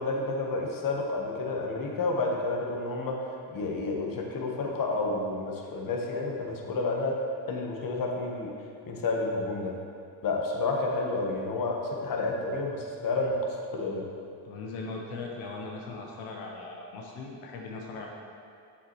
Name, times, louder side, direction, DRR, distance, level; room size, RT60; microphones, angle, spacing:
voice 1, 0.0-3.2 3.5-7.2 7.5-8.5 8.9-9.7 10.2-14.1, left 3 dB, 45° left, 0 dB, 1.2 m, -30 dB
voice 2, 14.4-18.1, left 3 dB, 85° left, 0 dB, 0.9 m, -39 dB
7.2 x 6.8 x 3.1 m, 2.4 s
supercardioid pair, 80°, 46 cm